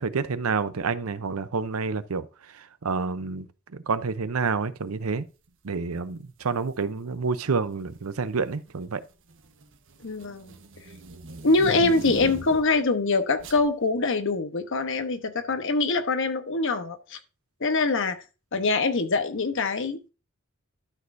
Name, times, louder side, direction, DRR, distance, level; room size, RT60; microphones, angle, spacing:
voice 1, 0.0-2.3 2.5-3.5 3.7-5.3 5.6-9.0 11.8-11.9, right 4 dB, 90° right, 0.7 m, -28 dB
sound 1, 6.5-6.8 7.7-8.2 8.5-12.8 13.4-13.7, right 2 dB, 65° right, 1.2 m, -40 dB
voice 2, 10.0-10.5 11.4-17.2 17.6-18.2 18.5-20.1, left 3 dB, 65° left, 1.1 m, -24 dB
12.0 x 6.2 x 2.6 m
head